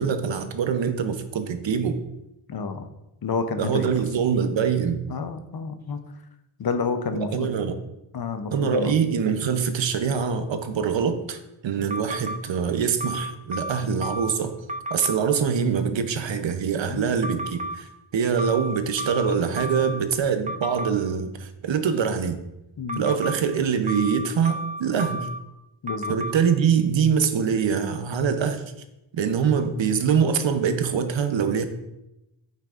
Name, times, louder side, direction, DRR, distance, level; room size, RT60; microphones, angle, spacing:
voice 1, 0.0-2.0 3.5-5.0 7.1-7.8 8.5-14.6 14.9-22.4 23.0-25.3 26.1-28.6 29.1-31.6, right 6 dB, 70° right, 8 dB, 0.7 m, -24 dB
voice 2, 2.5-2.9 3.2-3.9 5.1-6.0 6.6-7.6 8.1-8.9 16.9-17.1 22.8-23.1 25.8-26.2, left 5 dB, 50° left, 8 dB, 0.7 m, -29 dB
sound 1, 11.9-12.4 13.0-14.4 14.7-15.2 17.2-17.8 18.4-20.0 20.5-20.9 22.9-23.4 23.9-25.4 25.9-26.3, right 1 dB, 15° right, 0.4 m, -32 dB
8.8 x 5.6 x 2.5 m, 0.92 s
wide cardioid pair, 115°, 47 cm